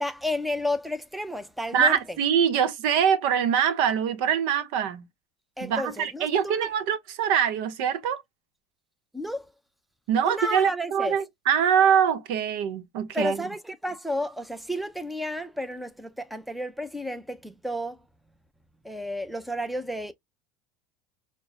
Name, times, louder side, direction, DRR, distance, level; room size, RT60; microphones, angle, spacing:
voice 1, 0.0-2.2 5.6-6.7 9.1-9.5 10.2-11.2 13.1-18.0 18.8-20.1, left 1 dB, ahead, 0.7 m, -32 dB
voice 2, 1.7-5.1 5.6-8.2 10.1-13.4, right 8 dB, 70° right, 0.9 m, -24 dB
6.0 x 2.2 x 2.7 m
supercardioid pair, 110°, 6 cm